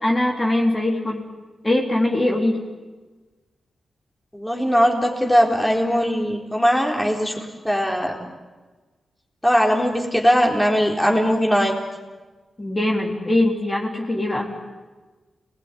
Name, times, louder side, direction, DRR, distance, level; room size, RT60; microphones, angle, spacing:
voice 1, 0.0-1.3 1.6-2.7 12.6-14.5, left 1 dB, 20° left, -1 dB, 3.7 m, -22 dB
voice 2, 4.3-8.2 9.4-11.8, equal, 5° left, 0 dB, 4.0 m, -20 dB
29.0 x 20.5 x 10.0 m, 1.3 s
wide cardioid pair, 105°, 0 cm